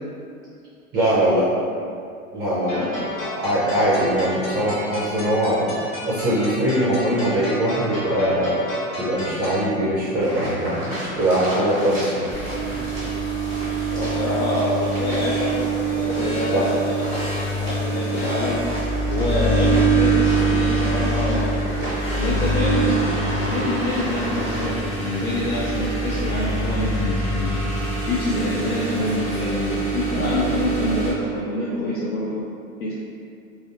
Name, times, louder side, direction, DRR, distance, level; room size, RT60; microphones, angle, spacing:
voice 1, 0.9-1.5 2.3-2.8 3.3-12.2 16.5-16.6 25.2-25.3 26.8-26.9, right 1 dB, 35° right, -9 dB, 0.7 m, -22 dB
sound 1, 2.7-9.7, left 1 dB, 30° left, 1.1 m, -33 dB
sound 2, 10.2-24.7, equal, 15° right, 1.1 m, -33 dB
sound 3, 12.3-31.1, right 3 dB, 15° left, 0.5 m, -24 dB
voice 2, 13.9-17.3 17.6-18.7 19.1-21.6 22.2-32.4 32.8-32.9, left 2 dB, 90° left, -6 dB, 0.5 m, -26 dB
2.6 x 2.0 x 2.5 m, 2.4 s
hypercardioid pair, 100°, 42 cm